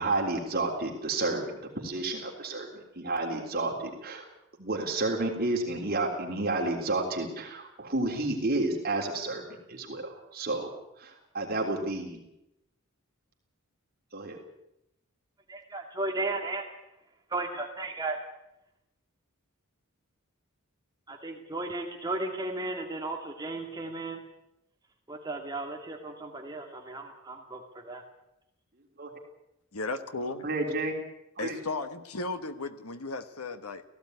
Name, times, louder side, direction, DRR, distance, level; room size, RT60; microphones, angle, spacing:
voice 1, 0.0-4.3 4.6-10.7 11.0-12.2 14.1-14.4 29.0-29.1 30.4-30.9 31.4-31.6, right 2 dB, 45° right, 0 dB, 3.5 m, -31 dB
voice 2, 15.5-16.7 17.3-18.2 21.1-24.2 25.1-28.0, right 2 dB, 20° right, 2 dB, 2.1 m, -35 dB
voice 3, 29.7-30.5 31.4-33.8, left 3 dB, 85° left, 9 dB, 1.3 m, -35 dB
17.0 x 16.0 x 9.5 m, 0.86 s
head